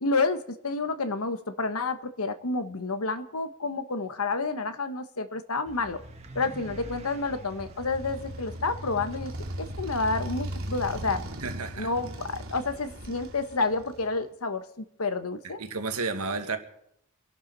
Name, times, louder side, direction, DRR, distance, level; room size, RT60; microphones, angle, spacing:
voice 1, 0.0-6.0 6.3-9.3 9.6-11.2 11.8-15.6, left 3 dB, 75° left, 1.2 m, -29 dB
sound 1, 5.7-10.2, right 1 dB, 30° right, 1.6 m, -45 dB
Motorcycle, 7.5-14.2, right 1 dB, 65° right, 2.2 m, -38 dB
voice 2, 11.4-11.9 15.6-16.6, right 4 dB, 85° right, 1.8 m, -31 dB
26.5 x 11.5 x 4.1 m
head